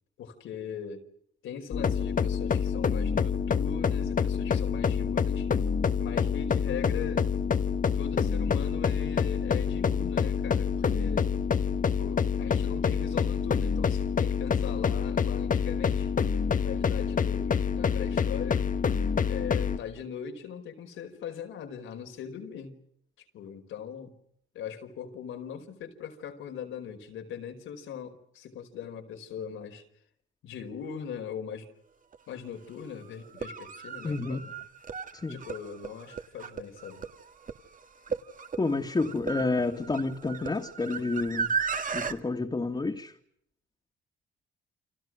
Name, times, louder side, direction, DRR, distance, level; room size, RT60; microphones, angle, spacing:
voice 1, 0.2-1.0 1.4-5.5 6.0-7.3 7.9-11.3 12.0-16.1 16.6-18.7 19.3-22.7 23.3-24.1 24.5-29.8 30.4-31.7 32.3-34.5 35.3-37.1, left 7 dB, 80° left, 5.0 m, -40 dB
sound 1, 1.7-19.8, left 6 dB, 40° left, 1.6 m, -27 dB
sound 2, 32.1-32.2 33.2-42.1, right 6 dB, 40° right, 2.1 m, -35 dB
voice 2, 34.0-34.4 35.1-35.4 38.6-41.6 41.9-43.1, left 3 dB, 25° left, 2.4 m, -29 dB
29.5 x 26.0 x 6.3 m
cardioid pair, 90°, 20 cm